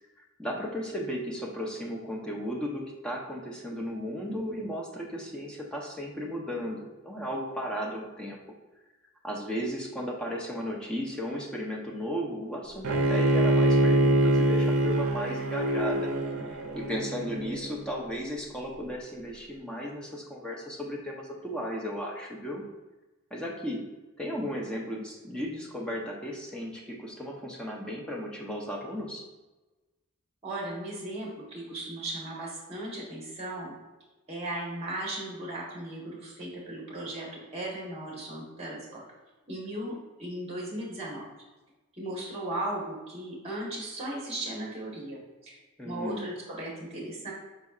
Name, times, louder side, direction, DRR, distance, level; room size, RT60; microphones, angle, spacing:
voice 1, 0.4-8.4 9.2-16.1 16.4-22.6 23.3-23.8 24.2-29.2 45.8-46.3, equal, 5° left, -2 dB, 0.6 m, -35 dB
Bowed string instrument, 12.8-17.9, right 1 dB, 70° right, 0.5 m, -25 dB
voice 2, 30.4-33.7 34.3-39.0 39.5-41.2 42.0-47.3, right 1 dB, 30° right, -3 dB, 1.2 m, -37 dB
5.5 x 4.0 x 2.4 m, 1.1 s
head